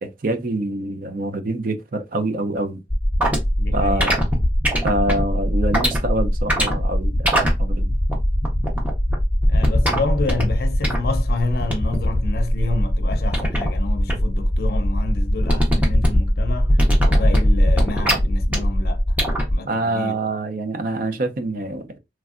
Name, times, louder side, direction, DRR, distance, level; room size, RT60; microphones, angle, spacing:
voice 1, 0.0-2.8 3.7-4.2 4.8-7.9 19.7-21.9, right 2 dB, 50° right, 0.5 m, -25 dB
sound 1, 2.9-19.5, equal, 10° right, 0.8 m, -20 dB
voice 2, 3.6-4.2 9.5-16.8 17.0-19.2 19.5-20.2, left 3 dB, 60° left, 0.5 m, -29 dB
3.2 x 2.5 x 2.4 m
head